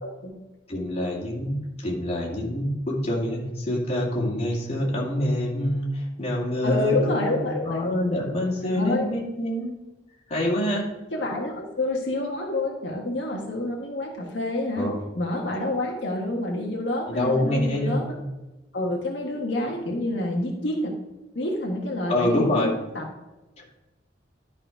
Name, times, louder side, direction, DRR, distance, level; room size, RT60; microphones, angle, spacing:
voice 1, 0.0-0.4 6.6-7.8 8.6-9.1 11.1-14.9 15.1-18.0 18.7-20.9 21.3-23.0, left 2 dB, 80° left, -1 dB, 1.4 m, -28 dB
voice 2, 0.7-1.6 1.8-9.7 10.3-10.9 14.7-14.9 17.1-18.1 22.1-22.7 23.6-23.8, left 1 dB, 35° left, -4 dB, 2.4 m, -26 dB
11.5 x 4.3 x 5.0 m, 1.0 s
head